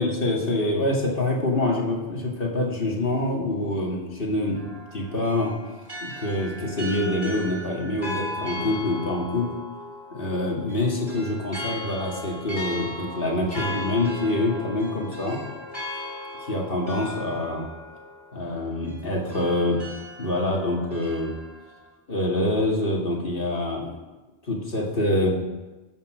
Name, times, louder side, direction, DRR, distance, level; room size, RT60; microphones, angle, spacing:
voice 1, 0.0-4.6 4.9-5.5 6.0-9.5 10.1-15.4 16.5-17.7 18.3-19.8 20.2-21.4 22.1-23.9 24.4-25.3, left 1 dB, 60° left, -2 dB, 2.3 m, -25 dB
sound 1, 4.5-21.9, left 1 dB, 25° right, 3.1 m, -37 dB
14.5 x 5.6 x 6.5 m, 1.1 s
omnidirectional pair, 1.1 m